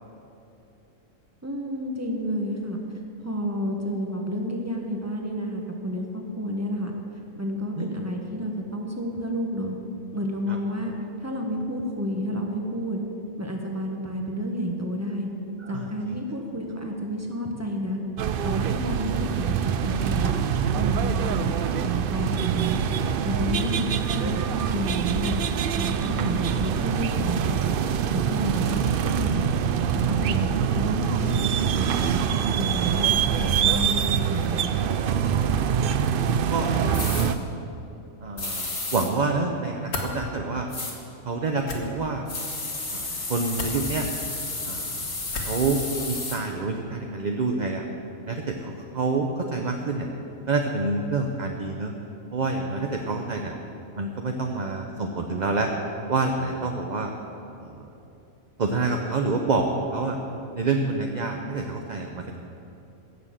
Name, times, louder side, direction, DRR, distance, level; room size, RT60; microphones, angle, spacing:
voice 1, 1.4-6.9 7.4-9.8 10.1-10.9 11.2-13.0 13.4-15.3 15.7-18.0 18.4-20.4 20.7-22.8 23.2-25.3 25.7-27.8 28.1-29.5 30.1-34.7, equal, 10° right, 1 dB, 1.3 m, -30 dB
voice 2, 15.6-16.2 36.5-37.4 38.2-40.7 41.2-42.3 42.9-44.1 44.6-45.0 45.5-45.8 46.1-47.8 48.3-50.1 50.5-51.9 52.3-53.5 54.0-55.7 56.1-57.1 57.6-57.9 58.6-60.2 60.5-62.4, right 3 dB, 40° right, 3 dB, 0.7 m, -27 dB
sound 1, 18.2-37.4, right 8 dB, 90° right, 0.4 m, -25 dB
sound 2, 36.9-37.3 38.4-39.1 40.7-40.9 42.3-46.4, left 2 dB, 35° left, 1.8 m, -32 dB
sound 3, 39.9-40.1 41.6-41.8 43.5-43.8 45.3-45.6, left 3 dB, 80° left, 2.0 m, -31 dB
17.0 x 6.9 x 7.4 m, 2.9 s
omnidirectional pair, 1.5 m